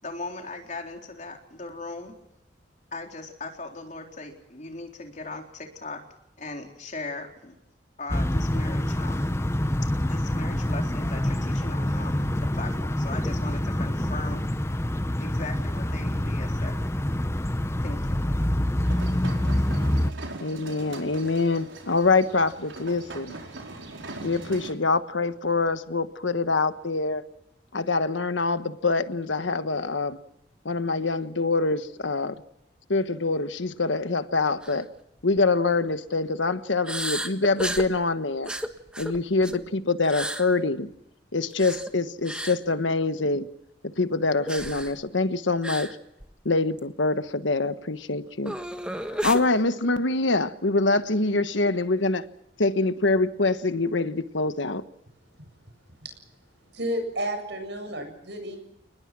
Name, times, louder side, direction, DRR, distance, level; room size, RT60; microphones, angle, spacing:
voice 1, 0.0-2.2 2.9-6.0 6.4-7.5 8.0-9.4 10.1-14.4 15.2-16.8 17.8-18.3, left 2 dB, 40° left, 4.0 m, -38 dB
sound 1, 8.1-20.1, left 1 dB, 15° left, 0.8 m, -26 dB
sound 2, 18.8-24.7, right 2 dB, 85° right, 4.9 m, -41 dB
voice 2, 20.4-23.3 24.2-27.2 27.7-30.2 30.6-32.4 32.9-34.9 35.2-38.5 39.0-40.9 41.3-43.5 43.9-45.9 46.4-48.5 49.1-52.2 52.6-54.8, left 3 dB, 80° left, 1.3 m, -25 dB
sound 3, 34.6-34.8 35.2-35.4 36.9-37.9 38.5-39.7 40.0-40.4 41.5-41.9 42.3-42.6 44.5-45.0 45.6-45.9 46.2-46.3 46.8-46.9 48.5-49.4, right 1 dB, 5° right, 1.5 m, -32 dB
voice 3, 56.7-58.6, right 1 dB, 65° right, 7.7 m, -31 dB
29.0 x 20.5 x 6.2 m
head